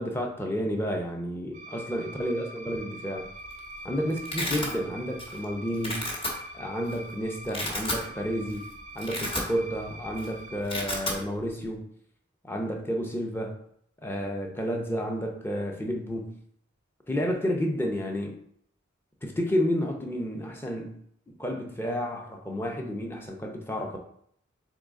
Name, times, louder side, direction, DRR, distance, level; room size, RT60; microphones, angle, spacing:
voice 1, 0.0-3.3 3.8-6.1 6.5-8.7 8.9-11.8 12.4-13.6 14.0-16.4 17.1-18.4 19.2-24.0, equal, 10° left, 2 dB, 0.6 m, -31 dB
sound 1, 1.5-10.6, right 1 dB, 35° right, 0.3 m, -43 dB
Domestic sounds home sounds, 3.2-3.6 3.9-4.7 5.2-5.4 5.7-6.3 6.9-7.0 7.4-8.0 8.5-8.6 8.9-9.8 10.1-10.3 10.5-11.2, left 1 dB, 25° left, 1.0 m, -32 dB
3.9 x 3.7 x 3.6 m, 0.68 s
head